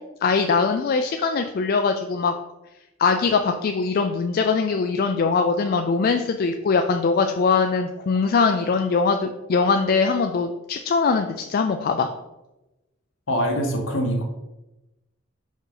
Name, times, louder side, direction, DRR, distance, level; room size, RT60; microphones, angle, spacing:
voice 1, 0.2-2.3 3.0-12.1, left 4 dB, 45° left, 5 dB, 0.4 m, -22 dB
voice 2, 13.3-14.2, equal, 65° left, 2 dB, 1.2 m, -23 dB
5.2 x 4.9 x 3.9 m, 0.98 s
head